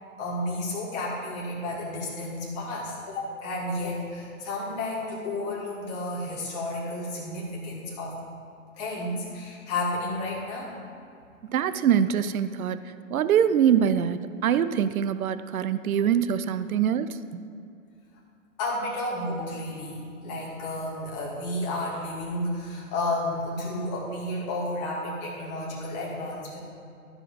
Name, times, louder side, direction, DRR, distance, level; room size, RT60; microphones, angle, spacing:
voice 1, 0.2-8.2 8.8-10.8 18.6-26.6, left 1 dB, 30° left, -5 dB, 2.3 m, -32 dB
voice 2, 11.5-12.8 13.1-17.4, right 8 dB, 75° right, 13 dB, 0.6 m, -24 dB
14.0 x 5.0 x 5.2 m, 2.5 s
hypercardioid pair, 150°, 43 cm